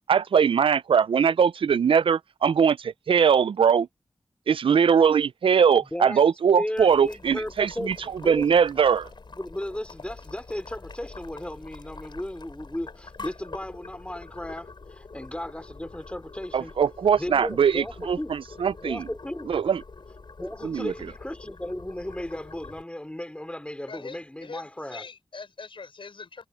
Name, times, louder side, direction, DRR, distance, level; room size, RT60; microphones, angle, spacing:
voice 1, 0.1-3.9 4.5-8.0 8.3-9.1 16.5-19.0 19.5-19.8 20.6-20.9, right 7 dB, 85° right, 0.4 m, -21 dB
voice 2, 5.9-6.2 6.5-8.6 9.4-16.7 17.2-18.3 18.8-19.5 20.4-25.1, left 1 dB, 15° left, 4.5 m, -35 dB
Boiling, 6.8-22.8, left 3 dB, 60° left, 4.7 m, -45 dB
voice 3, 23.9-26.5, left 4 dB, 80° left, 6.4 m, -42 dB
wide cardioid pair, 65°, 9 cm